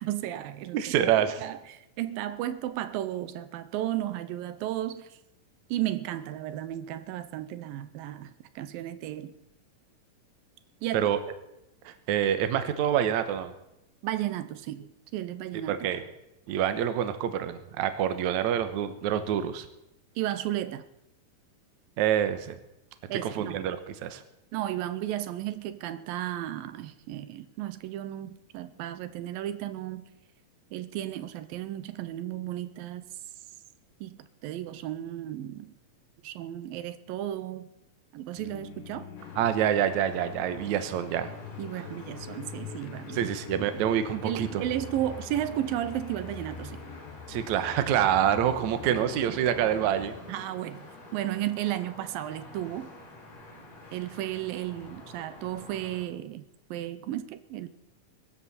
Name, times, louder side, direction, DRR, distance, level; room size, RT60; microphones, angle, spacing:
voice 1, 0.0-1.1 1.4-5.1 5.7-9.3 10.8-11.1 14.0-15.8 20.2-20.8 23.1-23.6 24.5-30.1 30.7-33.0 34.0-35.7 36.2-37.7 38.1-39.1 41.6-43.2 43.6-43.7 44.2-46.8 48.9-49.4 50.3-50.9 51.1-52.9 53.9-57.7, right 13 dB, 85° right, 12 dB, 2.6 m, -34 dB
voice 2, 0.7-1.4 10.9-11.2 11.9-13.5 15.7-16.0 16.5-19.7 22.0-22.6 23.2-24.2 39.4-41.3 43.1-44.6 47.3-50.1, right 10 dB, 65° right, 10 dB, 2.2 m, -26 dB
sound 1, 38.4-50.2, left 7 dB, 75° left, 2.9 m, -44 dB
sound 2, 39.2-56.0, left 2 dB, 50° left, 4.7 m, -48 dB
22.5 x 13.0 x 4.2 m, 0.89 s
omnidirectional pair, 4.0 m